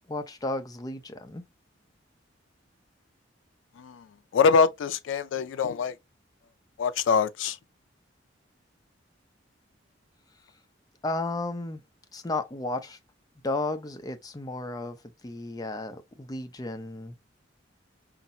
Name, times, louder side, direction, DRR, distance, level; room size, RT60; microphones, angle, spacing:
voice 1, 0.1-1.4 11.0-11.8 12.1-13.0 13.4-15.0 15.2-17.1, left 2 dB, 20° left, 0.6 m, -33 dB
voice 2, 4.3-5.9 6.8-7.6, left 5 dB, 75° left, 0.3 m, -24 dB
5.7 x 2.0 x 2.6 m
head